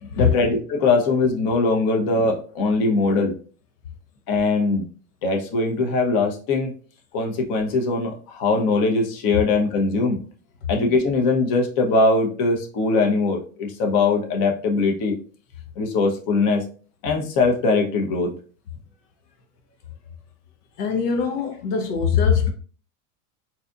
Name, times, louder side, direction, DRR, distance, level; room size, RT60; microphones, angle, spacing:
voice 1, 0.2-3.3 4.3-4.9 5.2-6.7 7.1-10.2 10.7-15.1 15.8-16.6 17.0-18.3, left 3 dB, 50° left, 1.0 m, -21 dB
voice 2, 20.8-22.5, left 7 dB, 80° left, 0.7 m, -21 dB
4.0 x 2.9 x 2.4 m
supercardioid pair, 110°, 46 cm